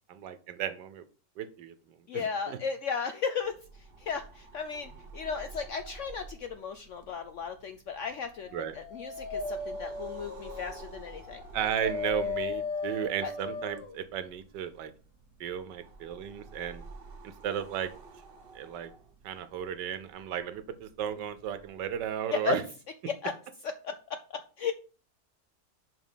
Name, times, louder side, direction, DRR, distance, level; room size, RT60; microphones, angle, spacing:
voice 1, 0.1-1.0 1.4-1.7 2.1-2.6 8.5-8.7 11.5-14.9 15.4-16.8 17.2-17.9 18.5-18.9 19.2-22.6, right 9 dB, 85° right, 12 dB, 1.4 m, -34 dB
voice 2, 2.1-3.6 4.0-11.4 13.2-13.3 22.3-22.6 23.1-23.3 23.6-24.7, left 6 dB, 70° left, 9 dB, 0.7 m, -35 dB
sound 1, 3.4-22.1, right 3 dB, 40° right, 1.0 m, -51 dB
Dog, 8.4-14.0, left 3 dB, 85° left, 1.8 m, -37 dB
5.6 x 5.2 x 5.6 m, 0.37 s
omnidirectional pair, 1.8 m